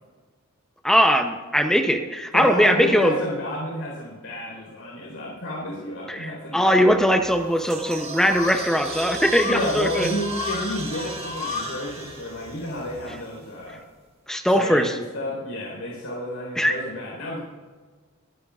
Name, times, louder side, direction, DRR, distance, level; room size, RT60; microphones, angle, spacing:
voice 1, 0.8-3.1 6.1-10.1 14.3-14.9 16.6-16.8, equal, 5° left, 6 dB, 0.6 m, -20 dB
voice 2, 2.3-6.9 9.5-13.8 14.5-17.4, left 1 dB, 80° left, -3 dB, 4.2 m, -31 dB
sound 1, 6.9-13.0, left 4 dB, 45° left, 2.1 m, -35 dB
sound 2, 7.3-13.6, right 3 dB, 30° right, 1.7 m, -37 dB
23.5 x 10.0 x 2.5 m, 1.4 s
head